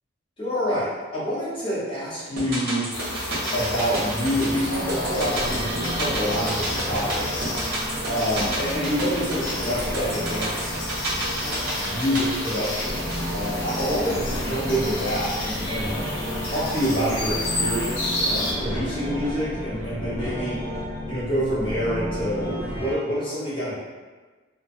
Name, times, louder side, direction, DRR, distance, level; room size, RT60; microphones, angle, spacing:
voice 1, 0.4-2.9 3.5-7.5 8.0-10.7 11.8-12.9 13.3-16.0 16.4-20.6 21.1-23.8, equal, 25° left, -11 dB, 0.9 m, -27 dB
sound 1, 2.4-14.7 15.0-15.1, right 1 dB, 45° right, 0.6 m, -32 dB
sound 2, 2.9-18.5, left 1 dB, 65° left, 0.5 m, -31 dB
sound 3, 4.5-22.9, left 1 dB, 5° right, 0.4 m, -33 dB
2.2 x 2.2 x 2.5 m, 1.3 s
head